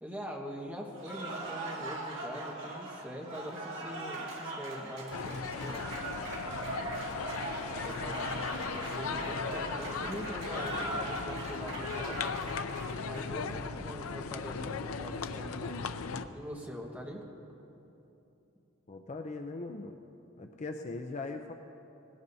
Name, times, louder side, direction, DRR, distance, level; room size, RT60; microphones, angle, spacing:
voice 1, 0.0-5.9 7.8-12.3 13.0-15.8 16.3-17.2, equal, 10° right, -1 dB, 1.4 m, -43 dB
Cheering / Applause, 0.9-13.5, right 2 dB, 65° right, 2.2 m, -40 dB
sound 1, 5.1-16.3, left 5 dB, 85° left, 0.5 m, -37 dB
voice 2, 18.9-20.0 20.4-21.5, left 3 dB, 35° left, 4 dB, 0.5 m, -40 dB
18.5 x 17.5 x 2.7 m, 2.9 s
head